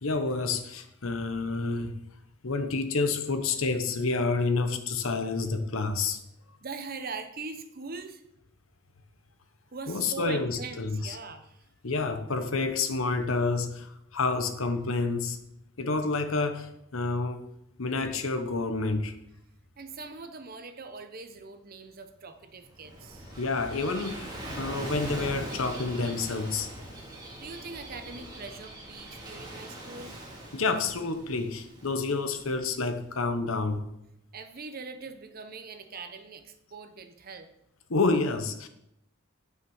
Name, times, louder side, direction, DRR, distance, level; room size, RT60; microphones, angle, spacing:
voice 1, 0.0-1.9 2.4-6.2 9.9-11.2 11.8-15.4 15.8-17.4 17.8-19.1 23.4-26.7 30.5-33.9 37.9-38.7, left 3 dB, 75° left, 1.0 m, -29 dB
voice 2, 6.6-8.2 9.7-11.7 19.8-23.3 27.4-30.2 34.3-37.5, right 4 dB, 45° right, 0.9 m, -41 dB
Gull seagull / Waves surf, 22.5-33.1, right 1 dB, 20° right, 2.2 m, -41 dB
9.7 x 6.1 x 5.5 m
head